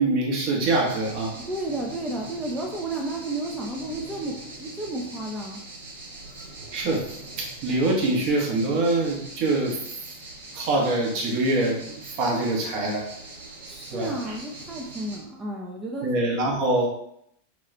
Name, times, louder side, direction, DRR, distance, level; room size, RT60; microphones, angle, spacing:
voice 1, 0.0-1.3 6.7-7.0 7.4-9.8 10.5-13.0 13.9-14.3 16.0-16.9, right 2 dB, 50° right, 0 dB, 0.9 m, -24 dB
sound 1, 0.6-15.2, right 2 dB, 75° right, 0.9 m, -42 dB
voice 2, 1.5-5.6 13.7-16.1, right 2 dB, 15° right, -2 dB, 0.5 m, -32 dB
3.0 x 2.3 x 3.0 m, 0.74 s
hypercardioid pair, 95°, 0 cm